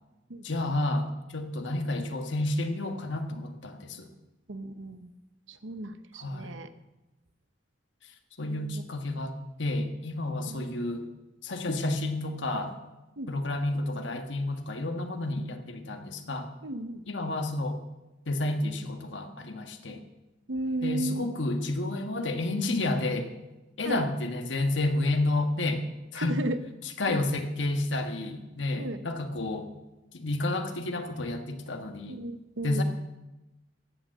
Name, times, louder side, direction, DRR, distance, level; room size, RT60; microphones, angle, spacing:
voice 1, 0.4-4.1 6.2-6.5 8.4-9.3 9.6-11.1 11.4-12.8 13.3-16.5 17.1-17.8 18.3-20.0 20.8-23.3 23.8-25.8 26.1-26.4 27.0-29.7 30.1-32.2 32.6-32.8, left 2 dB, 70° left, 5 dB, 1.5 m, -30 dB
voice 2, 4.5-5.1 5.5-6.7 8.4-8.8 10.5-11.1 13.2-13.3 16.6-17.0 19.9-20.1 20.5-21.3 23.8-24.0 26.3-26.6 27.1-27.2 28.8-29.0 32.1-32.8, right 1 dB, 80° right, 10 dB, 1.0 m, -35 dB
14.5 x 9.2 x 7.6 m, 1.0 s
head